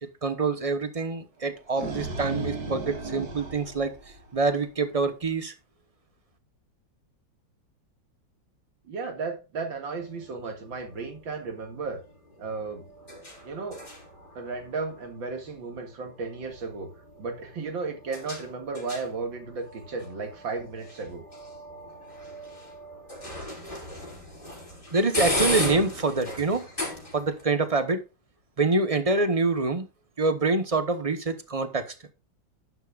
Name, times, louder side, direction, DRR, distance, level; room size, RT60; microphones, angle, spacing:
voice 1, 0.0-4.0 4.3-5.5 24.9-26.7 27.1-28.0 28.6-29.9 30.2-31.9, right 3 dB, 25° right, 0.8 m, -26 dB
sound 1, 1.4-4.7, right 2 dB, 55° right, 2.4 m, -35 dB
voice 2, 8.9-12.0 12.4-12.8 13.4-13.8 14.4-16.9 17.2-21.2, right 4 dB, 85° right, 2.8 m, -34 dB
sound 2, 10.0-27.4, left 1 dB, 25° left, 4.8 m, -37 dB
12.0 x 10.5 x 2.5 m
omnidirectional pair, 2.0 m